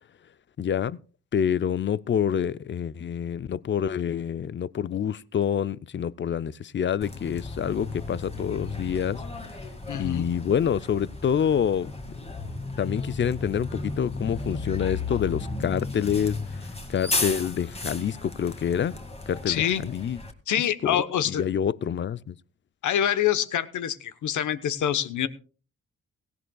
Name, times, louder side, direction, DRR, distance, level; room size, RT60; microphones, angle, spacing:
voice 1, 0.6-1.0 1.3-9.2 10.0-11.9 12.8-19.0 19.3-20.2 20.8-22.4, left 8 dB, 40° left, 0.5 m, -27 dB
Bus, 7.0-20.3, left 3 dB, 20° left, 2.2 m, -34 dB
voice 2, 9.9-10.3 19.5-19.8 20.5-21.4 22.8-25.3, left 10 dB, 70° left, 1.1 m, -26 dB
17.5 x 16.0 x 2.3 m
cardioid pair, 65°, 31 cm